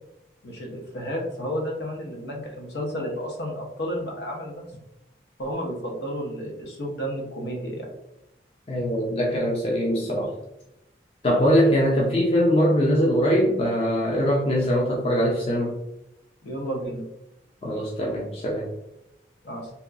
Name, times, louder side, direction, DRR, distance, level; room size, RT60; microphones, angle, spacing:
voice 1, 0.4-4.6 5.4-7.9 16.4-17.0 19.4-19.7, equal, 70° left, 0 dB, 0.7 m, -32 dB
voice 2, 8.7-10.3 11.2-15.7 17.6-18.7, equal, 35° left, -3 dB, 0.4 m, -22 dB
2.8 x 2.3 x 2.3 m, 0.86 s
head